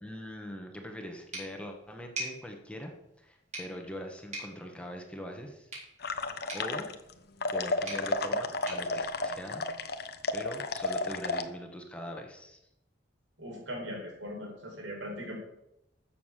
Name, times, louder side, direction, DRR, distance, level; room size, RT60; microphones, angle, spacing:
voice 1, 0.0-2.9 3.2-5.7 6.5-6.9 7.5-9.7 10.3-12.6, equal, 5° left, 3 dB, 1.5 m, -42 dB
sound 1, 1.3-10.0, right 1 dB, 40° right, 5.1 m, -46 dB
sound 2, 6.0-7.1 7.4-11.4, left 3 dB, 55° left, 1.0 m, -32 dB
voice 2, 13.4-15.4, equal, 90° right, 1 dB, 4.7 m, -39 dB
13.5 x 7.2 x 6.6 m, 0.83 s
head